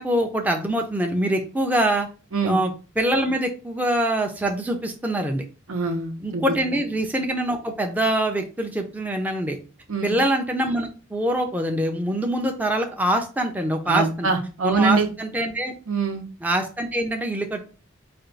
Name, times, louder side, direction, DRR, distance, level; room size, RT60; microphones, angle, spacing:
voice 1, 0.0-2.1 2.4-5.4 6.2-9.6 10.0-14.3 14.6-15.7 16.4-17.6, right 1 dB, 10° right, 3 dB, 0.4 m, -24 dB
voice 2, 5.7-6.5 9.9-10.1 13.9-15.1 15.9-16.2, right 4 dB, 85° right, 4 dB, 0.8 m, -24 dB
4.3 x 2.3 x 3.8 m, 0.35 s
head